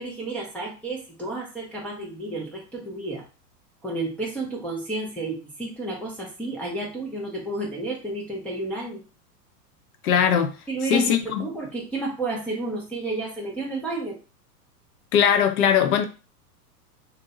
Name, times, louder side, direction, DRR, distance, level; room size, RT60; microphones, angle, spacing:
voice 1, 0.0-3.2 3.8-9.0 10.7-11.1 11.4-14.2, right 2 dB, 5° left, 0.4 m, -31 dB
voice 2, 10.0-10.5 10.9-11.5 15.1-16.1, left 8 dB, 65° left, 0.8 m, -20 dB
2.6 x 2.2 x 4.0 m
hypercardioid pair, 105°, 48 cm